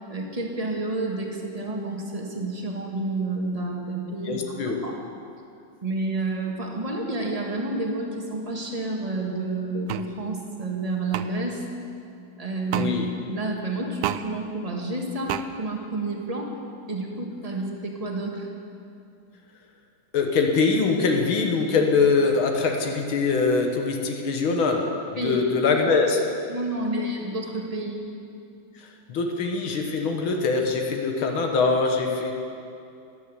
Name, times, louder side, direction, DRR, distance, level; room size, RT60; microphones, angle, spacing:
voice 1, 0.1-4.9 5.8-11.6 12.4-16.5 16.9-18.5 25.2-25.4 26.5-28.0, right 2 dB, 20° right, 0 dB, 1.6 m, -30 dB
voice 2, 4.3-4.9 12.7-13.1 20.1-26.3 28.8-32.3, left 4 dB, 85° left, 3 dB, 2.1 m, -23 dB
sound 1, 9.9-10.1 11.1-11.3 12.7-12.9 14.0-14.2 15.3-15.4, right 12 dB, 70° right, 1.0 m, -28 dB
13.0 x 11.0 x 8.2 m, 2.6 s
omnidirectional pair, 2.2 m